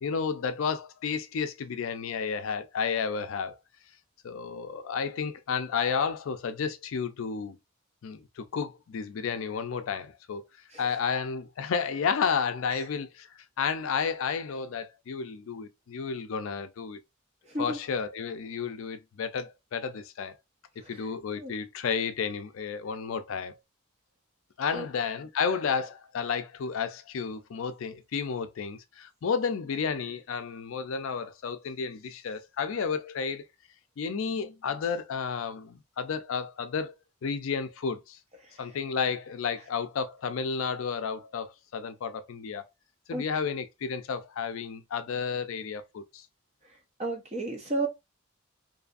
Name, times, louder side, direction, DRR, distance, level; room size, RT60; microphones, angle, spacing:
voice 1, 0.0-3.5 4.2-7.6 8.0-10.4 10.8-17.0 17.6-20.4 20.9-23.6 24.6-33.4 34.0-36.9 37.2-38.2 38.6-42.6 43.1-46.2, left 6 dB, 70° left, 0.4 m, -32 dB
voice 2, 17.5-17.8 20.8-21.1 21.4-21.5 24.7-24.9 38.4-38.6 43.1-43.2 47.0-47.9, right 2 dB, 30° right, 0.7 m, -33 dB
2.6 x 2.5 x 2.4 m
head